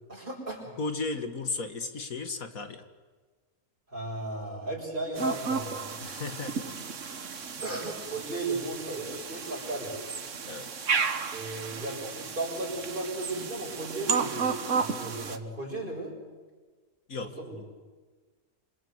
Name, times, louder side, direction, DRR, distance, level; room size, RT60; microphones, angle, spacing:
voice 1, 0.1-0.7 3.9-5.9 7.6-10.0 11.3-16.1 17.4-17.6, right 2 dB, 35° right, 0 dB, 7.3 m, -35 dB
voice 2, 0.8-2.8 6.0-6.9 10.5-10.7 17.1-17.3, left 3 dB, 65° left, 7 dB, 2.2 m, -35 dB
sound 1, 5.2-15.4, right 5 dB, 55° right, 1.6 m, -33 dB
27.5 x 27.0 x 8.1 m, 1.3 s
omnidirectional pair, 1.6 m